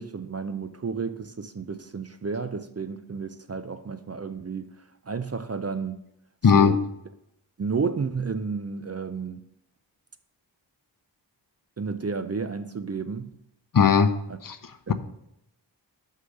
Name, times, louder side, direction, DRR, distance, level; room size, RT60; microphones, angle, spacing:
voice 1, 0.0-4.7 5.1-6.0 6.5-6.8 7.6-9.4 11.8-13.3 14.9-15.0, right 5 dB, 35° right, 0.5 m, -31 dB
voice 2, 6.4-6.8 13.7-14.1 14.4-14.9, left 6 dB, 50° left, 0.6 m, -19 dB
6.4 x 5.6 x 6.5 m
wide cardioid pair, 55°, 44 cm